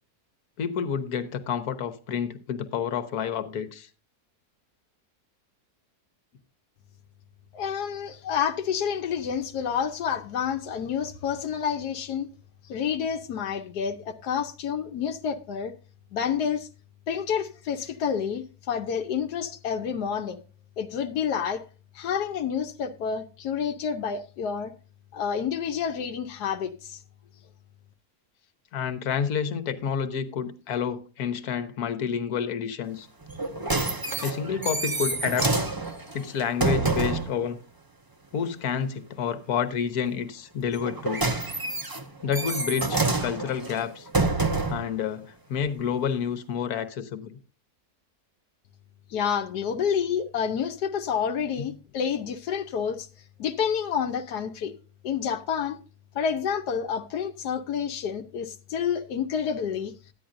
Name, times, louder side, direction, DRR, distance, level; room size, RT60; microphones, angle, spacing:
voice 1, 0.6-3.9 28.7-33.1 34.2-35.5 36.1-37.6 38.3-41.2 42.2-44.1 44.7-47.4 51.6-51.7, left 7 dB, 70° left, 1.6 m, -29 dB
voice 2, 7.5-12.3 12.7-15.7 16.1-16.7 17.1-20.4 20.8-21.6 21.9-24.7 25.1-27.0 49.1-53.1 53.4-54.7 55.0-55.8 56.1-59.9, left 7 dB, 90° left, 1.4 m, -29 dB
sound 1, 33.3-37.4 40.7-44.9 45.6-45.7, right 3 dB, 20° right, 0.7 m, -27 dB
14.0 x 10.0 x 2.6 m
omnidirectional pair, 1.7 m